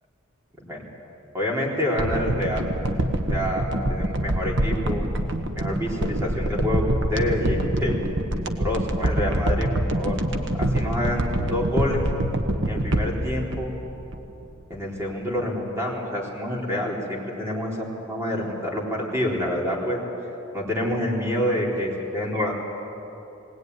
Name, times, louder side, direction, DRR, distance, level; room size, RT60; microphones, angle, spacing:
voice 1, 1.3-2.6 3.3-5.1 5.6-6.8 7.1-8.0 8.6-10.2 10.6-12.0 12.7-13.7 14.7-20.0 20.5-22.5, left 1 dB, 15° right, -3 dB, 4.2 m, -27 dB
sound 1, 2.0-14.4 14.7-14.8, right 1 dB, 60° right, 1.4 m, -25 dB
21.0 x 18.5 x 9.6 m, 3.0 s
head